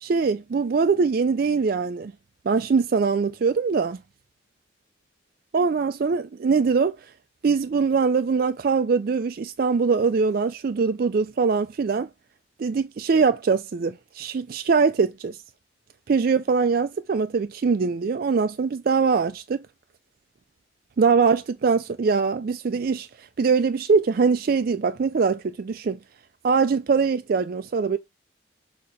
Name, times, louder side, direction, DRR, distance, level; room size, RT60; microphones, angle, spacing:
voice 1, 0.0-2.1 2.5-4.0 5.5-7.0 7.4-12.1 12.6-15.4 16.1-19.6 21.0-26.0 26.4-28.0, right 5 dB, 50° right, 0.3 m, -22 dB
6.7 x 2.8 x 5.0 m
head